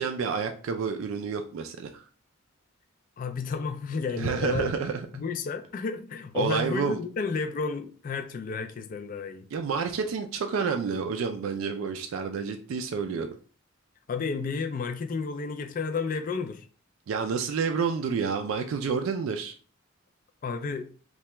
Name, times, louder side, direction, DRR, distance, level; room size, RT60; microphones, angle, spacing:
voice 1, 0.0-2.0 4.2-5.0 6.3-7.0 9.5-13.3 17.1-19.5, right 5 dB, 75° right, 0.3 m, -29 dB
voice 2, 3.2-4.8 5.1-9.5 14.1-16.6 20.4-20.9, left 5 dB, 40° left, 0.3 m, -32 dB
2.8 x 2.2 x 3.2 m
head